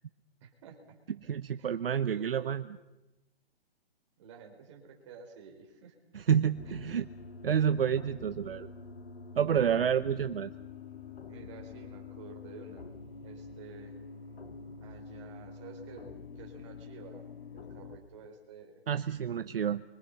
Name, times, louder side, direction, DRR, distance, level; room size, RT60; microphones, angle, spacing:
voice 1, 0.4-1.0 1.6-1.8 2.0-2.5 4.2-5.9 6.7-6.8 9.7-10.0 11.2-12.8 13.2-14.0 14.8-17.3 17.5-18.8 19.6-19.7, right 5 dB, 30° right, 2 dB, 4.9 m, -51 dB
voice 2, 1.3-2.6 6.1-7.1 7.4-8.7 9.4-10.5 18.9-19.8, right 8 dB, 65° right, 12 dB, 0.9 m, -29 dB
sound 1, 6.5-18.0, left 5 dB, 75° left, 2.5 m, -46 dB
29.0 x 25.0 x 5.6 m, 1.0 s
hypercardioid pair, 165°, 31 cm